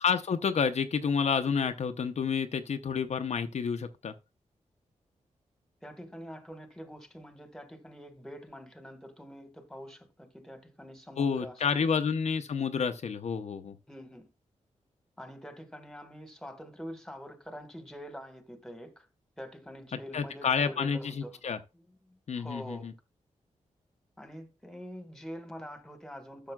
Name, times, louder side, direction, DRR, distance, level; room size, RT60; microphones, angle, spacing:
voice 1, 0.0-4.1 11.2-13.8 20.1-21.6 22.3-22.9, left 6 dB, 60° left, 0.7 m, -29 dB
voice 2, 5.8-11.9 13.9-14.3 15.2-19.1 19.4-21.4 21.7-22.9 24.2-26.5, equal, 5° left, 1.6 m, -45 dB
12.0 x 6.8 x 2.3 m
wide cardioid pair, 135°, 13 cm